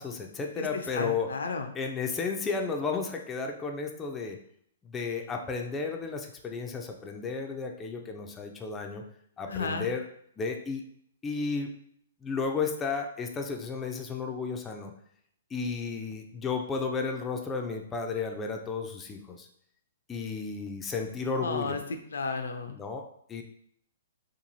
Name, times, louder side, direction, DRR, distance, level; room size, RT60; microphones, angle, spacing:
voice 1, 0.0-1.3 1.8-4.4 4.9-9.0 9.4-10.0 10.4-10.8 11.2-11.7 12.2-14.9 15.5-19.5 20.1-21.8 22.7-23.4, left 4 dB, 15° left, 2 dB, 0.3 m, -33 dB
voice 2, 0.6-1.7 9.5-9.9 21.3-21.8 22.1-22.8, left 4 dB, 85° left, 6 dB, 0.4 m, -33 dB
2.9 x 2.3 x 2.6 m, 0.66 s
hypercardioid pair, 140°, 0 cm